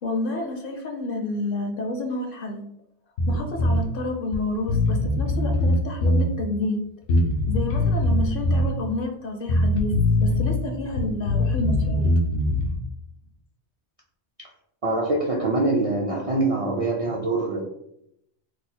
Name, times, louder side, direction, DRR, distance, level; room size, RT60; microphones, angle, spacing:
voice 1, 0.0-2.7 3.3-6.8 7.4-9.9 10.2-12.1, left 2 dB, 60° left, 3 dB, 0.7 m, -29 dB
Bass guitar, 3.2-3.8 4.3-4.4 4.7-6.3 7.1-8.7 9.5-10.6 10.9-12.8, left 1 dB, 90° left, 1.0 m, -22 dB
voice 2, 14.8-17.6, right 2 dB, 50° right, -3 dB, 0.4 m, -24 dB
2.8 x 2.1 x 4.1 m, 0.76 s
omnidirectional pair, 1.2 m